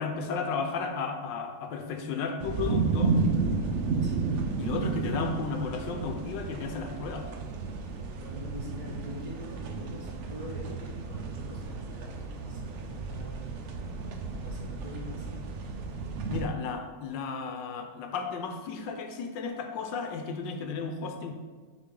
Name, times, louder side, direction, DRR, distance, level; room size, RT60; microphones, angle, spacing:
voice 1, 0.0-3.2 4.6-7.3 16.3-21.3, left 5 dB, 85° left, 5 dB, 1.4 m, -34 dB
sound 1, 2.4-16.5, right 4 dB, 75° right, 0.6 m, -32 dB
voice 2, 4.0-4.3 8.1-13.6 14.3-15.4, equal, 50° right, -5 dB, 2.1 m, -44 dB
6.7 x 4.8 x 3.7 m, 1.5 s
omnidirectional pair, 2.0 m